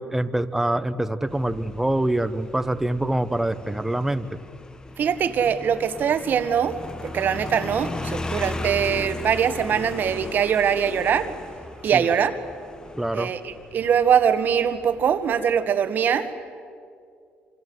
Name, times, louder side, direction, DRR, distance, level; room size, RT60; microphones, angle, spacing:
voice 1, 0.0-4.3 11.9-12.1 13.0-13.3, right 1 dB, 5° right, 9 dB, 1.2 m, -25 dB
Motorcycle, 1.3-15.6, left 2 dB, 20° left, 1.0 m, -37 dB
voice 2, 5.0-11.3 11.8-12.4 13.1-16.3, right 8 dB, 55° right, 9 dB, 1.8 m, -22 dB
27.5 x 26.0 x 8.0 m, 2.3 s
cardioid pair, 100°, 4 cm